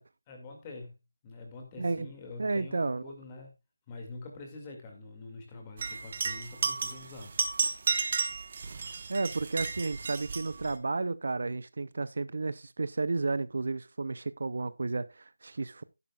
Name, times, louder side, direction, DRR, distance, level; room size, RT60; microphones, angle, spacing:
voice 1, 0.3-0.9 1.2-3.5 3.9-7.4, left 3 dB, 15° left, 2.2 m, -45 dB
voice 2, 1.8-2.1 2.4-3.0 9.1-15.8, right 3 dB, 50° right, 0.5 m, -32 dB
sound 1, 5.8-10.7, right 4 dB, 30° right, 1.2 m, -33 dB
11.5 x 11.0 x 2.3 m
figure-of-eight pair, 175°, 0 cm